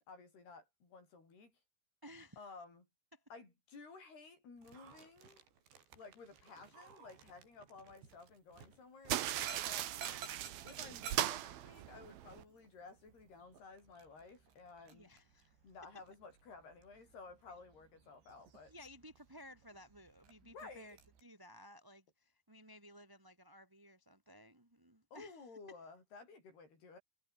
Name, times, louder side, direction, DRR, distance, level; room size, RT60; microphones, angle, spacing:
voice 1, 0.0-1.6 2.4-2.8 3.3-5.4 5.9-10.3 10.6-15.1 15.6-18.7 20.5-21.0 25.1-27.0, left 4 dB, 65° left, 10.0 m, -55 dB
voice 2, 2.0-2.4 3.1-3.2 14.9-15.6 18.7-25.4, equal, 5° right, 2.2 m, -57 dB
Dog, 4.6-21.2, right 6 dB, 85° right, 7.2 m, -56 dB
sound 1, 9.1-12.4, right 13 dB, 65° right, 3.0 m, -39 dB
omnidirectional pair, 5.0 m